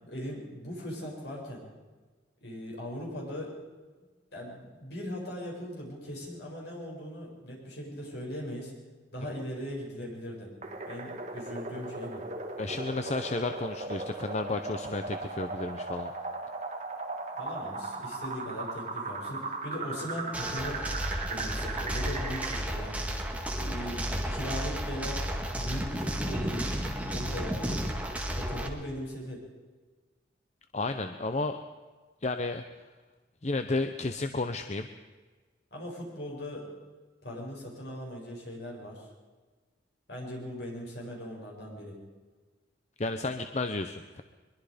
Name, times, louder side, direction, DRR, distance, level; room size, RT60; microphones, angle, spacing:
voice 1, 0.0-1.6 2.4-3.5 4.3-8.7 9.1-10.5 10.9-12.2 17.4-20.8 21.3-23.1 23.5-25.2 25.6-26.7 27.1-27.8 28.4-29.4 35.7-36.6 37.2-39.1 40.1-42.0, equal, 65° left, -2 dB, 7.3 m, -39 dB
sound 1, 10.6-22.6, right 3 dB, 40° right, 2.2 m, -38 dB
voice 2, 12.6-16.1 30.7-31.6 32.2-32.6 33.4-34.9 43.0-44.2, left 2 dB, 40° left, 8 dB, 0.8 m, -32 dB
sound 2, 20.3-28.7, equal, 10° right, 1.9 m, -33 dB
22.5 x 22.5 x 5.1 m, 1.3 s
head